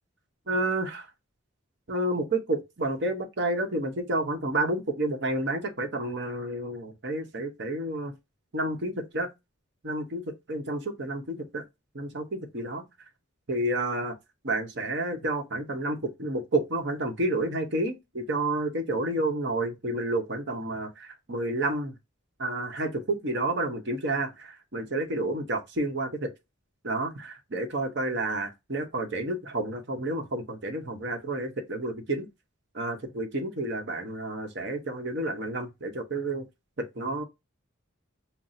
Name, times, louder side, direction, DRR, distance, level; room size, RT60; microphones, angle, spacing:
voice 1, 0.5-1.1 1.9-8.1 8.5-9.3 9.8-10.2 10.5-11.6 11.9-12.8 13.5-14.1 14.4-21.9 22.4-26.3 26.8-32.3 32.7-36.4 36.8-37.2, right 2 dB, 55° right, 0.9 m, -30 dB
5.6 x 2.1 x 2.6 m
head